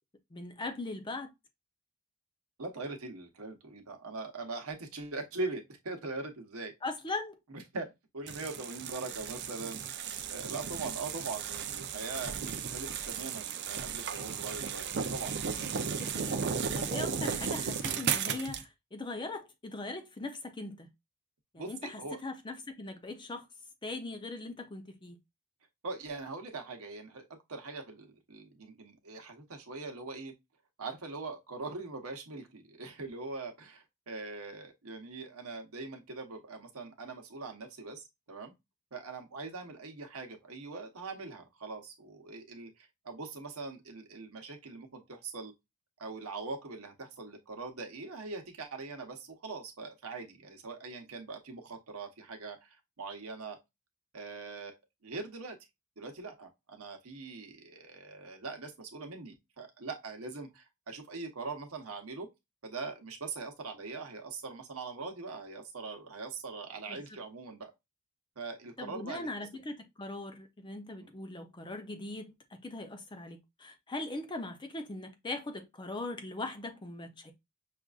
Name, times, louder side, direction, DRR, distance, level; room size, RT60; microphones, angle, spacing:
voice 1, 0.3-1.3 6.8-7.4 16.0-20.9 21.5-23.5 23.8-25.2 66.9-67.0 68.8-77.3, left 2 dB, 20° left, 0.5 m, -40 dB
voice 2, 2.6-6.7 7.5-7.9 8.1-12.4 12.7-15.3 21.6-22.2 25.8-27.2 27.5-30.3 30.8-38.5 38.9-45.5 46.0-53.6 54.1-54.8 55.0-55.6 56.0-62.3 62.6-67.7 68.4-69.3 71.0-71.1, right 3 dB, 75° right, 1.0 m, -42 dB
sound 1, 8.3-18.6, right 6 dB, 50° right, 0.5 m, -35 dB
5.9 x 2.5 x 2.3 m
head